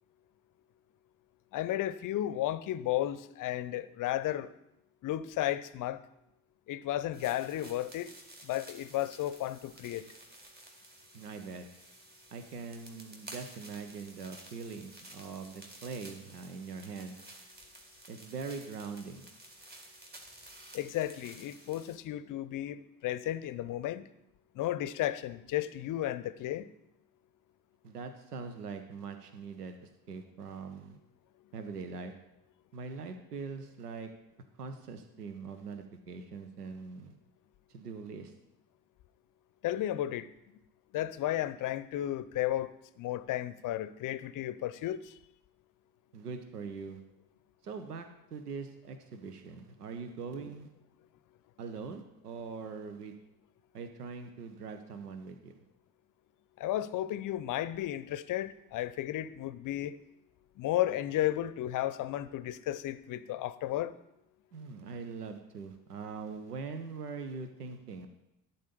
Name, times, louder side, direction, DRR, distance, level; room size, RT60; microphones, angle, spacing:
voice 1, 1.5-4.5 5.0-6.0 6.7-8.1 8.4-10.1 20.7-24.0 24.5-26.7 39.6-40.3 40.9-42.7 43.0-45.2 56.6-60.0 60.6-63.9, left 13 dB, 45° left, 0.6 m, -33 dB
sound 1, 7.1-22.0, right 1 dB, 20° right, 2.1 m, -53 dB
voice 2, 11.1-11.7 12.3-17.2 18.1-19.3 27.8-31.0 31.5-32.1 32.7-34.1 34.6-37.1 37.7-38.3 46.1-47.0 47.6-48.1 48.3-50.7 51.6-53.2 53.7-55.6 64.5-68.1, right 5 dB, 90° right, 0.7 m, -42 dB
12.0 x 4.1 x 6.7 m
figure-of-eight pair, 55°, 45 cm